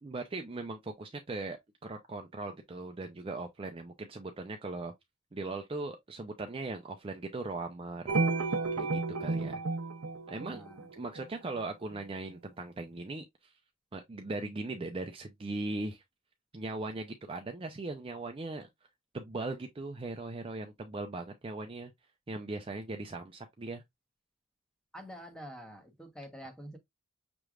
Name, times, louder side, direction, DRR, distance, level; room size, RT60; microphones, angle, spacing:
voice 1, 0.0-4.9 5.3-8.1 8.8-9.6 10.3-10.6 10.9-13.5 13.9-16.0 16.5-18.7 19.1-21.9 22.3-23.8, right 2 dB, 25° right, 0.5 m, -39 dB
sound 1, 8.1-11.2, right 3 dB, 80° right, 0.6 m, -32 dB
voice 2, 10.4-10.9 24.9-26.8, equal, 5° left, 0.9 m, -47 dB
6.0 x 3.3 x 2.3 m
head